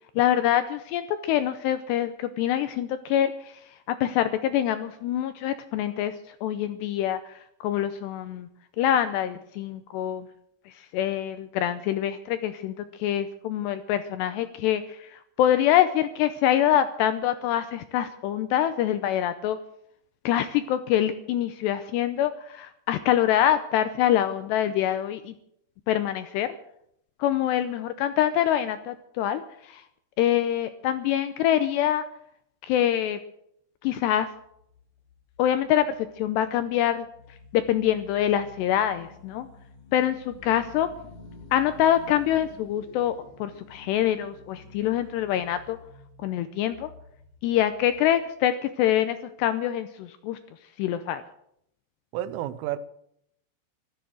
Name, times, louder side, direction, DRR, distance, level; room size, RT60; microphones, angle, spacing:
voice 1, 0.2-3.6 3.9-6.1 6.4-7.3 7.6-8.5 8.8-10.3 10.9-19.6 20.3-25.3 25.9-26.5 27.2-29.8 30.2-32.1 32.6-33.2 33.8-34.3 35.4-35.9 36.2-37.1 37.5-39.5 39.9-40.9 41.5-45.8 46.2-46.9 47.4-50.4 50.8-51.2, left 11 dB, 80° left, 10 dB, 2.5 m, -25 dB
sound 1, 34.0-48.2, left 3 dB, 50° left, 3.2 m, -50 dB
voice 2, 52.1-52.8, right 13 dB, 85° right, 14 dB, 3.3 m, -30 dB
15.0 x 13.0 x 6.3 m, 0.72 s
omnidirectional pair, 5.5 m